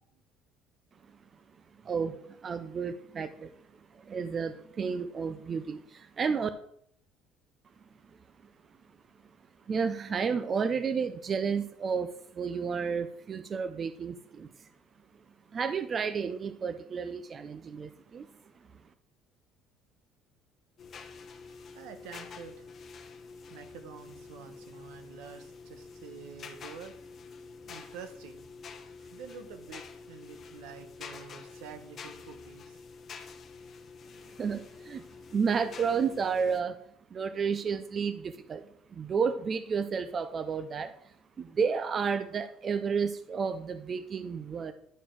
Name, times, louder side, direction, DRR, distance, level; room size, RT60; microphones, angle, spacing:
voice 1, 1.8-3.5 3.9-6.5 9.7-14.7 15.5-18.3 34.4-35.0 35.3-36.8 37.1-38.6 38.9-44.7, right 6 dB, 25° right, 11 dB, 0.4 m, -31 dB
sound 1, 20.8-36.6, left 5 dB, 30° left, 0.8 m, -48 dB
voice 2, 21.4-22.9 23.3-27.0 27.4-28.4 29.0-32.8, right 7 dB, 80° right, 8 dB, 1.1 m, -48 dB
11.0 x 4.4 x 4.5 m, 0.67 s
cardioid pair, 170°, 0 cm